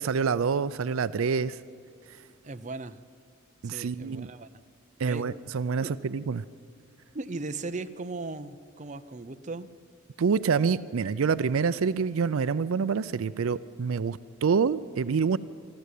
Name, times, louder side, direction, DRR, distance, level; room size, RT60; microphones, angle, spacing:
voice 1, 0.0-1.6 3.6-4.3 5.0-6.4 10.2-15.4, right 5 dB, 80° right, 16 dB, 0.4 m, -27 dB
voice 2, 2.4-3.0 3.6-4.5 5.0-5.2 5.8-5.9 7.1-9.7, right 3 dB, 35° right, 10 dB, 0.6 m, -37 dB
24.5 x 12.5 x 8.3 m, 2.4 s
head